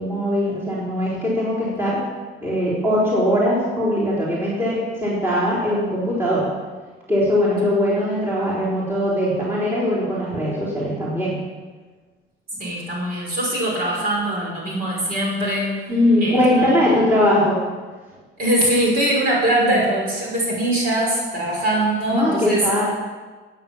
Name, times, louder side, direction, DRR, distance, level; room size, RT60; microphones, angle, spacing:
voice 1, 0.0-2.0 2.4-6.5 7.1-11.4 15.9-17.6 19.6-19.8 22.1-22.8, left 1 dB, 10° right, -8 dB, 4.0 m, -20 dB
voice 2, 12.6-15.7 16.2-17.0 18.4-22.6, right 1 dB, 45° right, -2 dB, 5.6 m, -22 dB
16.5 x 9.1 x 7.3 m, 1.4 s
cardioid pair, 180°, 21 cm